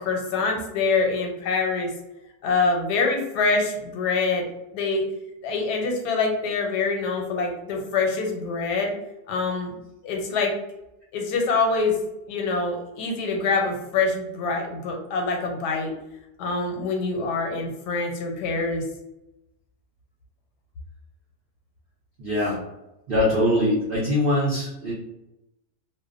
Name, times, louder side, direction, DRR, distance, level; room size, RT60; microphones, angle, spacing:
voice 1, 0.0-1.9 2.4-4.5 4.7-5.0 5.4-8.9 9.3-9.7 10.0-10.5 11.1-12.0 12.3-15.9 16.4-18.9, left 4 dB, 85° left, 1 dB, 1.2 m, -25 dB
voice 2, 22.2-22.6 23.1-24.9, left 1 dB, 85° right, -5 dB, 0.4 m, -22 dB
2.8 x 2.1 x 2.4 m, 0.92 s
omnidirectional pair, 1.7 m